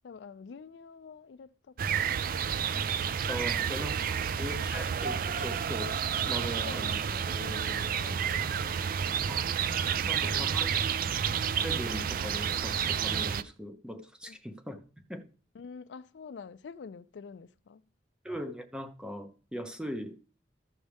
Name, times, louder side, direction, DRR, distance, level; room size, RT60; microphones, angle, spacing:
voice 1, 0.0-2.2 3.5-3.7 4.0-4.8 6.6-8.8 9.9-11.1 14.2-14.4 15.5-17.8, left 5 dB, 75° left, 0.4 m, -47 dB
sound 1, 1.8-13.4, right 7 dB, 55° right, 0.4 m, -30 dB
voice 2, 3.3-5.9 6.3-7.0 9.3-9.4 10.0-10.7 11.6-14.8 15.1-15.2 18.2-20.2, equal, 5° right, 0.9 m, -39 dB
sound 2, 7.2-12.6, left 2 dB, 40° right, 3.1 m, -54 dB
13.5 x 6.3 x 3.4 m
head